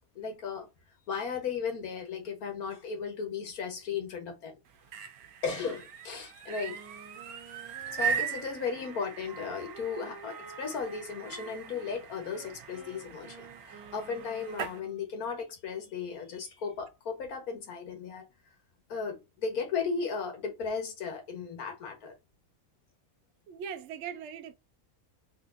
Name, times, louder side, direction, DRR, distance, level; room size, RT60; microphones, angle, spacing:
voice 1, 0.1-0.7 1.1-4.6 5.4-6.8 7.9-18.2 18.9-22.1, left 5 dB, 85° left, 1.6 m, -36 dB
sound 1, 4.7-14.8, right 8 dB, 90° right, 1.2 m, -39 dB
Wind instrument woodwind instrument, 6.6-15.0, right 2 dB, 20° right, 0.6 m, -50 dB
voice 2, 23.5-24.5, right 8 dB, 65° right, 0.7 m, -40 dB
3.9 x 3.2 x 2.5 m
omnidirectional pair, 1.5 m